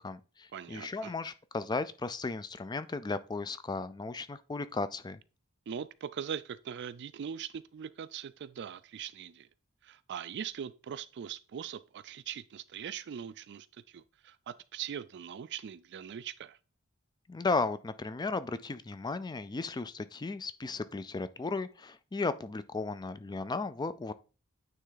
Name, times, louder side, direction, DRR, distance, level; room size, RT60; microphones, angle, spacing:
voice 1, 0.0-5.2 17.3-24.1, left 3 dB, 20° left, 0.4 m, -35 dB
voice 2, 0.5-1.1 5.7-9.5 9.8-16.6, right 8 dB, 55° right, 0.4 m, -41 dB
9.1 x 3.3 x 3.9 m
head